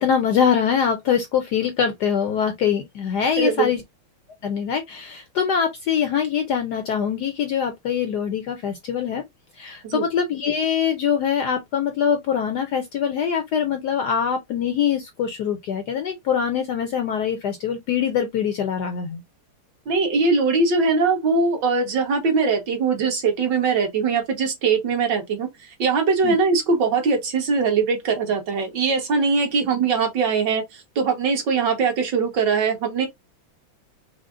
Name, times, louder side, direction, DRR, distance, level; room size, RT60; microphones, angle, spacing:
voice 1, 0.0-3.8 4.4-9.2 9.5-19.2 26.2-26.3, left 7 dB, 70° left, 1.0 m, -23 dB
voice 2, 3.4-3.7 9.8-10.0 19.9-25.5 25.8-33.1, right 4 dB, 60° right, 1.7 m, -21 dB
5.0 x 2.0 x 3.6 m
omnidirectional pair, 2.3 m